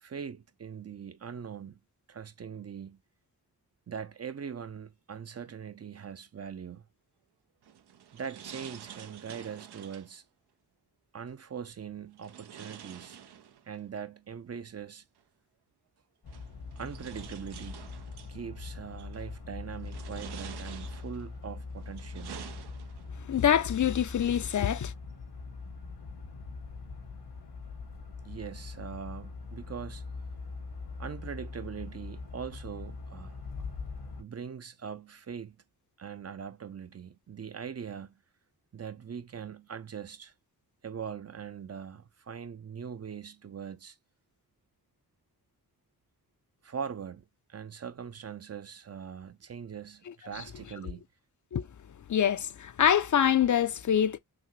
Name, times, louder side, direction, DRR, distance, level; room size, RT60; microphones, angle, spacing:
voice 1, 0.0-1.8 2.1-3.0 3.9-6.8 8.1-10.2 11.1-13.2 13.7-15.0 16.8-17.9 18.3-22.3 28.2-30.0 31.0-33.4 34.2-35.6 36.0-38.1 38.7-40.3 40.8-44.0 46.6-51.0, right 7 dB, 40° right, 0.5 m, -41 dB
sound 1, 7.6-10.2 12.2-13.8 15.2-15.3 16.3-18.3 19.0-19.4 19.8-21.3 21.8-23.2, right 9 dB, 80° right, 0.7 m, -48 dB
sound 2, 16.2-34.2, left 4 dB, 80° left, 1.2 m, -42 dB
voice 2, 23.3-24.9 51.5-51.7 52.1-54.2, left 9 dB, 50° left, 0.5 m, -25 dB
6.0 x 2.1 x 3.0 m
cardioid pair, 75°, 38 cm